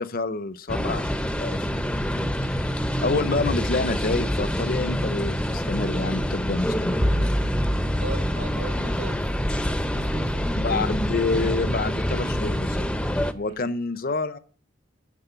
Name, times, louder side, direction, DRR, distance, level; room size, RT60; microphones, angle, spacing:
voice 1, 0.0-1.9 2.4-2.7 3.0-7.0 10.6-12.9 13.3-14.4, left 3 dB, 45° left, 0.6 m, -28 dB
sound 1, 0.7-13.3, equal, 5° left, 0.5 m, -26 dB
sound 2, 7.0-9.9, equal, 30° right, 0.7 m, -28 dB
voice 2, 7.9-10.8 13.4-13.7, right 2 dB, 80° right, 4.4 m, -39 dB
9.8 x 6.2 x 8.0 m
head